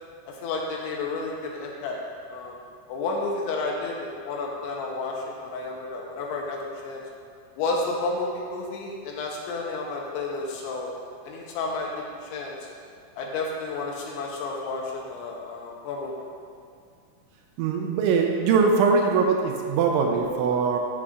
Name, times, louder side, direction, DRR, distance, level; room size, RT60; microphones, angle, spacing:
voice 1, 0.3-2.0 2.3-2.6 2.9-7.0 7.6-11.0 11.2-12.0 12.3-12.5 13.2-16.1, left 3 dB, 80° left, -1 dB, 3.1 m, -31 dB
voice 2, 17.6-20.8, right 5 dB, 80° right, 2 dB, 3.0 m, -22 dB
14.5 x 7.3 x 2.5 m, 2.2 s
omnidirectional pair, 5.7 m